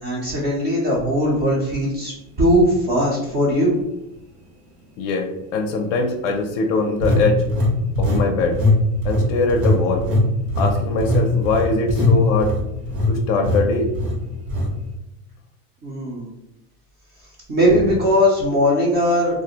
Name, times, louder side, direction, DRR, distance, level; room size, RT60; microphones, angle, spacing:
voice 1, 0.0-2.1 2.4-3.8 15.8-16.3 17.5-19.4, equal, 25° right, -4 dB, 0.4 m, -19 dB
sound 1, 2.5-2.7 3.3-3.4 7.0-8.3 8.5-8.8 9.0-13.1 13.4-13.6 13.9-14.1 14.5-14.7, left 1 dB, 85° right, 1.1 m, -20 dB
voice 2, 5.0-7.4 8.0-8.6 9.0-10.1 10.6-12.5 13.1-13.9, left 3 dB, 55° left, 4 dB, 0.5 m, -22 dB
2.4 x 2.0 x 2.8 m, 0.92 s
supercardioid pair, 145°, 43 cm